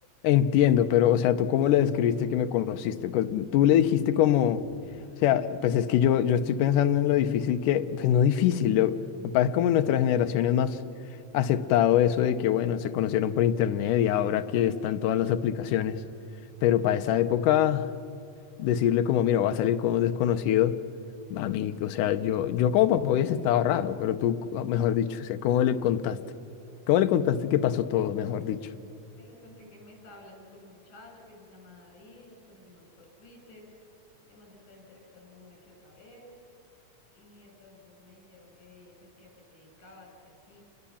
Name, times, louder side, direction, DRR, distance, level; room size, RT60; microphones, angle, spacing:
voice 1, 0.2-4.6 5.2-10.8 11.3-16.0 16.6-17.9 18.6-20.7 21.3-26.2 26.9-28.6, left 10 dB, 85° left, 10 dB, 2.4 m, -24 dB
voice 2, 4.8-5.3 29.2-33.6 34.3-36.3 37.1-40.6, left 2 dB, 65° left, 1 dB, 7.3 m, -53 dB
29.5 x 22.0 x 7.2 m, 2.6 s
omnidirectional pair, 3.6 m